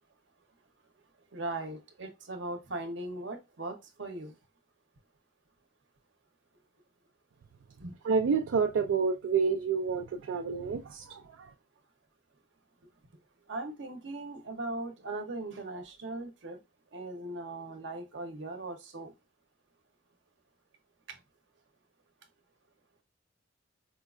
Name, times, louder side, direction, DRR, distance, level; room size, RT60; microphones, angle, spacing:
voice 1, 1.3-4.4 7.8-7.9 13.5-16.6 16.9-19.1 21.1-21.2, right 2 dB, 65° right, 0.8 m, -39 dB
voice 2, 8.0-11.5, right 5 dB, 85° right, 0.3 m, -29 dB
4.4 x 2.4 x 2.4 m
head